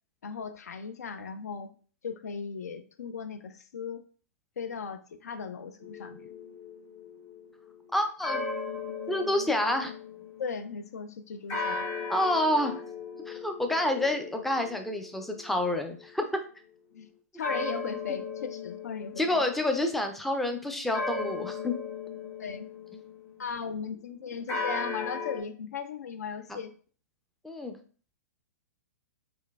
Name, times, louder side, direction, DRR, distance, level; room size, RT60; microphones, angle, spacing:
voice 1, 0.2-1.7 2.0-4.1 4.6-6.3 10.4-11.9 16.9-19.4 22.4-22.7 23.4-26.7, left 6 dB, 75° left, 0.4 m, -37 dB
sound 1, 5.8-10.7 11.5-16.4 17.4-19.8 20.9-23.4 24.5-25.4, left 4 dB, 30° left, 1.1 m, -37 dB
voice 2, 7.9-8.4 9.1-9.9 12.1-12.8 13.3-16.4 19.2-21.7 26.5-26.6 27.4-27.8, left 1 dB, ahead, 0.3 m, -28 dB
3.7 x 2.5 x 2.2 m
hypercardioid pair, 115°, 9 cm